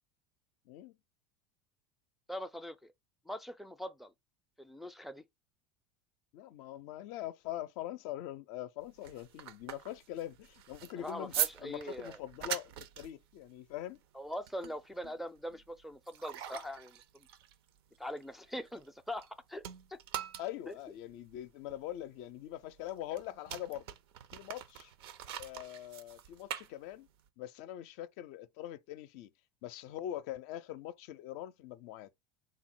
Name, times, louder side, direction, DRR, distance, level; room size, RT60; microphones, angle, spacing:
voice 1, 0.7-1.0 6.3-14.0 20.4-23.9 24.3-24.9 25.4-27.1 27.4-29.3 29.6-32.1, left 13 dB, 60° left, 0.4 m, -43 dB
voice 2, 2.3-2.9 3.3-4.1 4.6-5.2 11.0-12.2 14.1-17.3 18.0-19.7 19.9-20.0 20.7-20.8, equal, ahead, 0.4 m, -42 dB
sound 1, 8.8-19.3 19.6-27.3, right 10 dB, 80° right, 0.6 m, -43 dB
3.7 x 2.1 x 4.4 m
hypercardioid pair, 95°, 13 cm